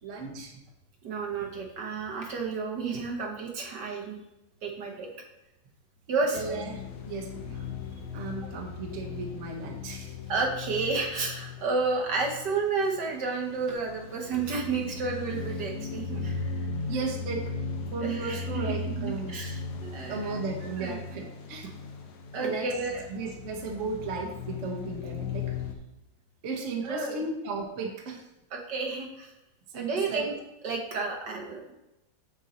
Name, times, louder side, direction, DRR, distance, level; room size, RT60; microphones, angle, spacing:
voice 1, 0.0-0.6 6.3-7.7 8.1-10.1 16.9-17.5 17.9-19.3 20.1-21.7 22.4-22.7 23.1-25.5 26.4-28.2 29.7-30.3, right 4 dB, 45° right, 1 dB, 1.2 m, -35 dB
voice 2, 1.0-4.2 4.6-5.1 6.1-6.4 10.3-16.7 18.0-20.4 20.8-21.0 22.3-23.0 26.8-27.2 28.5-29.3 29.7-30.3 30.6-31.6, right 4 dB, 65° right, 1 dB, 1.5 m, -31 dB
sound 1, 6.3-25.8, left 4 dB, 65° left, 1.3 m, -37 dB
6.6 x 5.4 x 4.2 m, 0.94 s
omnidirectional pair, 2.1 m